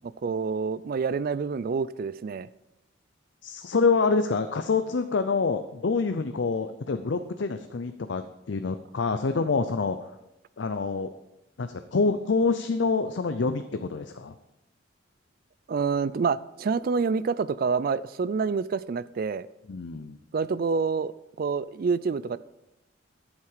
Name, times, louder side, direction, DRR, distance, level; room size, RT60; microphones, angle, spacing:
voice 1, 0.2-2.5 15.7-19.5 20.3-21.1 21.4-22.4, right 5 dB, 50° right, 0.3 m, -27 dB
voice 2, 3.4-10.1 10.6-11.1 11.6-14.3 19.7-20.2, left 4 dB, 65° left, 0.5 m, -26 dB
12.0 x 7.3 x 4.9 m
head